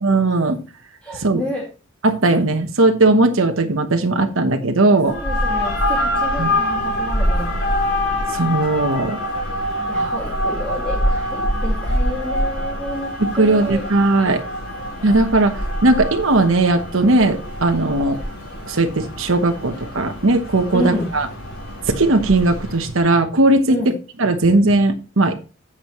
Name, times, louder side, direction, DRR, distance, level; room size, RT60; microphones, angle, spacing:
voice 1, 0.0-0.6 1.2-1.4 2.0-5.1 6.4-6.5 8.3-9.2 9.9-10.1 13.2-14.4 15.0-18.2 18.7-21.3 22.0-25.4, right 2 dB, 65° right, 5 dB, 1.0 m, -17 dB
voice 2, 1.0-1.7 4.9-7.5 9.9-13.1 13.4-13.8 20.7-21.1 23.7-24.0, equal, 5° left, -4 dB, 2.2 m, -29 dB
sound 1, 5.0-22.9, left 1 dB, 55° left, 4.5 m, -25 dB
10.0 x 7.5 x 3.1 m, 0.33 s
head